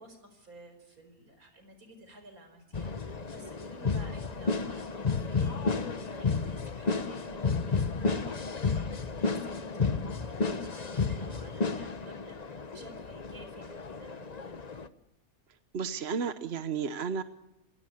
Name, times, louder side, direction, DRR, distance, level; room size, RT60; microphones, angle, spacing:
voice 1, 0.0-14.6, right 1 dB, 75° right, 7 dB, 5.4 m, -52 dB
sound 1, 2.7-14.9, left 4 dB, 30° left, 1.0 m, -32 dB
voice 2, 15.7-17.2, right 6 dB, 50° right, 11 dB, 1.1 m, -32 dB
27.5 x 17.5 x 7.9 m, 0.91 s
omnidirectional pair, 1.5 m